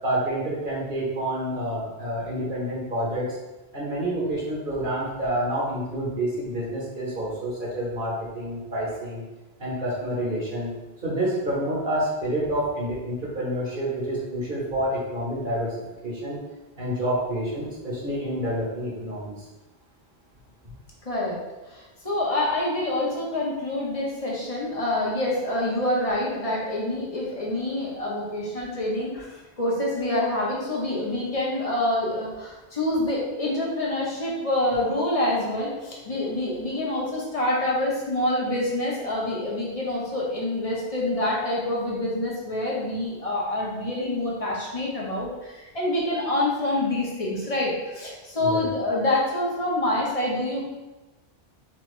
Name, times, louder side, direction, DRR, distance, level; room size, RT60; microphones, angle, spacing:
voice 1, 0.0-3.3 3.7-9.2 9.6-10.7 11.0-15.8 16.0-16.4 16.8-19.5 48.4-48.6, right 1 dB, 55° right, -6 dB, 1.3 m, -28 dB
voice 2, 21.0-21.4 21.7-50.6, left 1 dB, 35° left, -5 dB, 1.0 m, -26 dB
4.4 x 2.7 x 3.1 m, 1.1 s
omnidirectional pair, 1.1 m